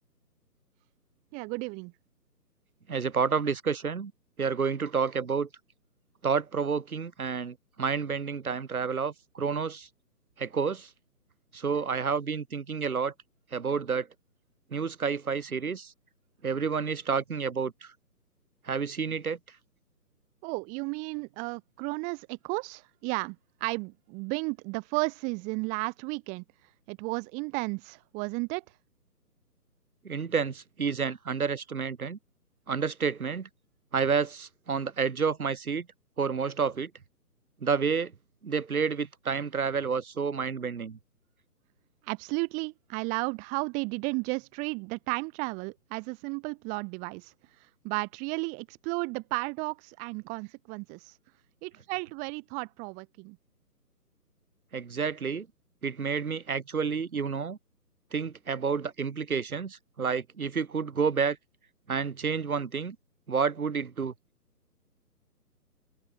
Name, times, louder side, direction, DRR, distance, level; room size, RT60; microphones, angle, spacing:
voice 1, 1.3-1.9 20.4-23.4 23.6-26.4 26.9-28.6 42.0-47.3 47.8-51.2 51.6-53.4, right 31 dB, 15° right, 2.6 m, -33 dB
voice 2, 2.9-4.1 4.4-5.5 6.2-9.9 10.4-10.9 11.5-13.1 13.5-14.1 14.7-15.9 16.4-17.9 18.7-19.4 30.0-32.2 32.7-33.5 33.9-35.9 36.2-36.9 37.6-38.1 38.4-41.0 54.7-55.5 55.8-57.6 58.1-61.4 61.9-63.0 63.3-64.1, right 5 dB, 60° right, 5.3 m, -29 dB
open air
figure-of-eight pair, 150°, 48 cm